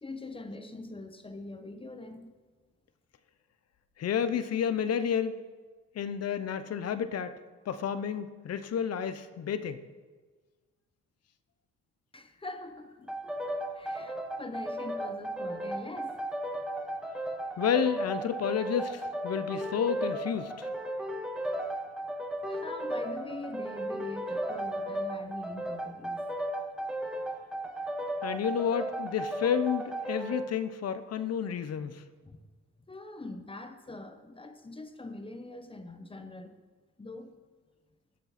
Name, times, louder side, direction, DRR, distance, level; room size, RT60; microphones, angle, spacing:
voice 1, 0.0-2.3 12.1-16.2 22.4-26.3 32.2-32.4 32.9-36.6 37.0-37.4, left 2 dB, 15° left, 7 dB, 1.1 m, -43 dB
voice 2, 4.0-5.4 5.9-7.3 7.7-9.8 17.6-20.7 28.2-32.0, left 8 dB, 55° left, 12 dB, 0.8 m, -30 dB
sound 1, 13.1-30.5, right 1 dB, 5° right, 1.3 m, -35 dB
17.5 x 6.7 x 4.2 m, 1.4 s
cardioid pair, 90°, 30 cm